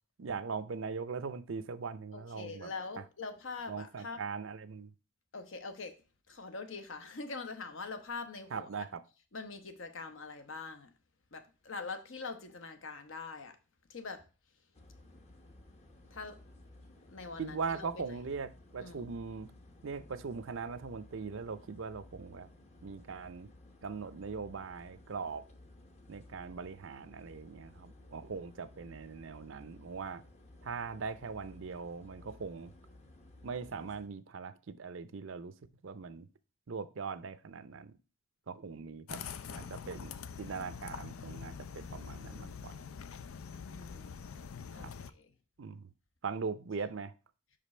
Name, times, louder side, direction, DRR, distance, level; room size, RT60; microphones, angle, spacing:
voice 1, 0.2-2.7 3.7-4.9 8.5-9.0 17.4-19.5 19.8-22.5 22.8-23.5 23.8-25.4 26.1-30.2 30.6-32.7 33.4-35.5 35.8-36.3 36.7-38.0 38.5-39.2 39.5-40.1 40.4-42.7 44.8-44.9 45.6-45.9 46.2-47.1, right 5 dB, 65° right, 0.5 m, -40 dB
voice 2, 2.1-4.2 5.3-5.9 6.3-8.7 9.3-10.9 11.3-13.6 13.9-14.2 16.1-16.4 17.1-18.0 18.8-19.1 43.6-44.2 44.7-45.3, left 4 dB, 65° left, 0.9 m, -43 dB
sound 1, 14.7-34.1, left 1 dB, 30° left, 0.8 m, -56 dB
sound 2, 39.1-45.1, left 6 dB, 85° left, 0.5 m, -44 dB
5.8 x 5.1 x 4.3 m
head